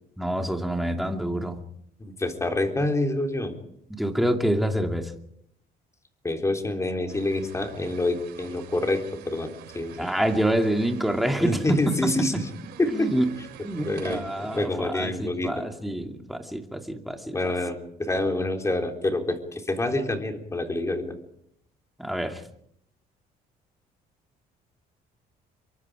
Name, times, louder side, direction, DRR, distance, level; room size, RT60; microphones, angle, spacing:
voice 1, 0.2-1.6 3.9-5.1 10.0-12.3 12.9-13.3 13.6-17.4 22.0-22.4, right 1 dB, ahead, 4 dB, 2.5 m, -27 dB
voice 2, 2.0-3.5 6.2-10.1 11.4-12.3 12.8-13.1 13.8-15.6 17.3-21.1, left 2 dB, 15° left, 4 dB, 3.7 m, -27 dB
sound 1, 7.1-14.7, right 9 dB, 80° right, 4.4 m, -45 dB
27.0 x 23.5 x 5.0 m, 0.71 s
cardioid pair, 110°, 17 cm